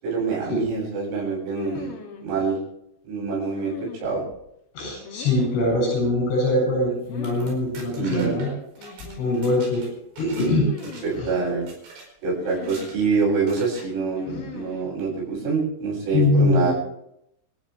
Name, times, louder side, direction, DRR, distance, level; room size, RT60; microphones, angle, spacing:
voice 1, 0.0-1.9 2.2-2.6 3.1-3.7 4.0-4.2 8.0-8.4 11.0-11.7 12.2-16.7, right 4 dB, 80° right, -3 dB, 10.0 m, -25 dB
sound 1, 1.5-2.3 3.6-4.4 5.0-5.8 7.1-7.5 7.8-7.9 8.8-9.5 10.6-11.4 12.4-13.2 14.2-14.9, left 6 dB, 75° left, 5.1 m, -39 dB
voice 2, 4.8-8.5 9.2-9.9 10.2-10.7 11.2-11.3 14.3-14.4 16.1-16.7, left 2 dB, 60° left, -2 dB, 10.0 m, -22 dB
sound 2, 7.0-10.5 10.8-11.3 11.7-12.1 12.6-13.0 13.5-13.9, right 3 dB, 65° right, 7.1 m, -44 dB
28.0 x 14.0 x 3.5 m, 0.78 s
omnidirectional pair, 5.8 m